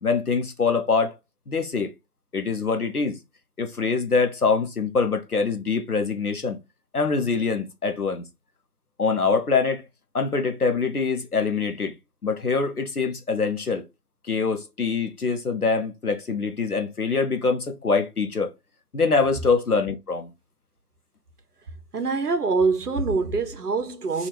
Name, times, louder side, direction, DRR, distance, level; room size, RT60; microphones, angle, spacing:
voice 1, 0.0-1.2 1.5-1.9 2.3-3.2 3.6-6.6 6.9-8.3 9.0-9.8 10.1-12.0 12.2-13.8 14.3-18.5 18.9-20.3, left 4 dB, 65° left, 0.8 m, -24 dB
voice 2, 21.9-24.3, right 4 dB, 70° right, 0.6 m, -24 dB
3.5 x 2.4 x 2.8 m
figure-of-eight pair, 170°, 49 cm